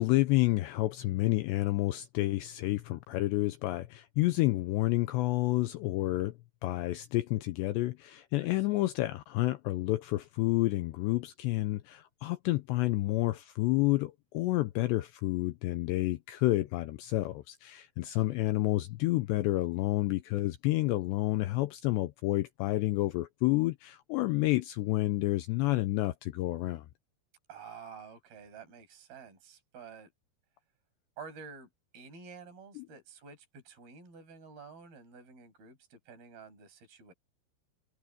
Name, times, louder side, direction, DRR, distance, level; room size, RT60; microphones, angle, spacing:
voice 1, 0.0-6.3 6.6-26.8 32.8-32.9, left 18 dB, 85° left, 2.5 m, -29 dB
voice 2, 8.3-8.9 18.0-18.4 27.5-30.1 31.2-31.7 31.9-37.1, right 5 dB, 50° right, 8.2 m, -50 dB
omnidirectional pair, 5.7 m